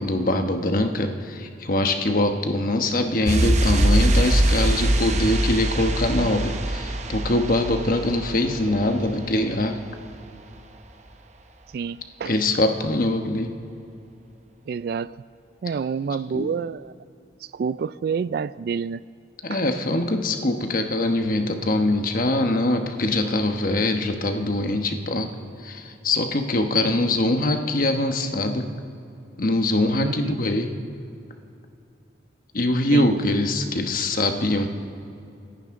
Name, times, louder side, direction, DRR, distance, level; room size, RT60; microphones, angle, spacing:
voice 1, 0.0-9.8 12.2-13.5 16.3-16.5 19.4-25.3 25.6-28.7 29.4-30.7 32.5-34.7, left 1 dB, 50° left, 5 dB, 1.1 m, -23 dB
sound 1, 3.3-9.8 10.0-10.1, right 1 dB, 40° right, 0.9 m, -23 dB
voice 2, 11.7-12.3 14.7-15.2 15.6-16.9 17.5-19.0 19.5-19.6 30.0-30.4 32.9-33.1, right 6 dB, 60° right, 18 dB, 0.3 m, -28 dB
28.0 x 10.5 x 3.7 m, 2.6 s
head